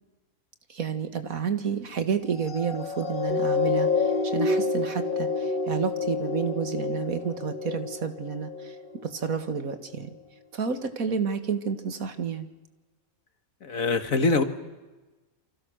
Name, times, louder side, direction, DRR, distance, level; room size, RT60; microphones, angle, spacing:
voice 1, 0.7-8.8 9.0-10.2 10.5-12.5, right 6 dB, 80° right, 10 dB, 2.1 m, -30 dB
sound 1, 2.4-9.0 9.7-9.8, left 4 dB, 35° left, 1.8 m, -28 dB
voice 2, 13.6-14.4, left 3 dB, 70° left, 10 dB, 2.0 m, -23 dB
28.5 x 25.0 x 6.4 m, 1.2 s
omnidirectional pair, 1.5 m